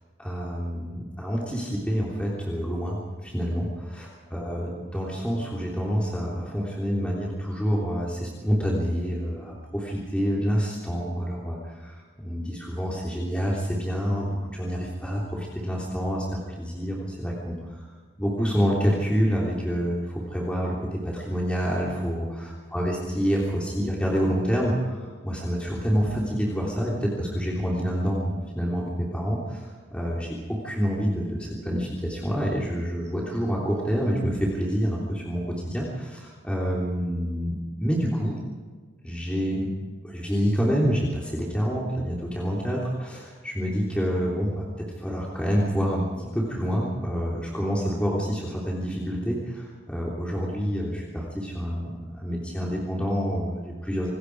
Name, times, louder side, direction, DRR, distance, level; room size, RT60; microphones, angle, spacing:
voice 1, 0.2-16.2 16.6-17.9 18.2-37.5 37.8-38.4 39.0-39.7 40.0-54.1, equal, 5° left, -4 dB, 3.3 m, -27 dB
26.5 x 21.5 x 4.8 m, 1.5 s
head